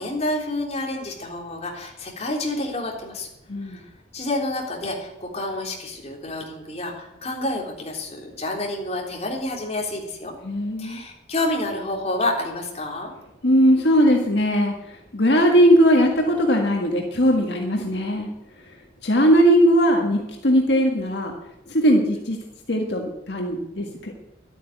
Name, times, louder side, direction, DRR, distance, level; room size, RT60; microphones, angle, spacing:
voice 1, 0.0-3.3 3.6-3.8 4.1-10.3 10.8-13.1, left 1 dB, 35° left, 0 dB, 3.2 m, -29 dB
voice 2, 3.5-3.8 10.4-11.0 13.4-18.3 19.0-21.3 21.7-22.4 22.7-24.2, equal, 70° left, 1 dB, 1.7 m, -19 dB
12.0 x 9.1 x 9.2 m, 0.88 s
head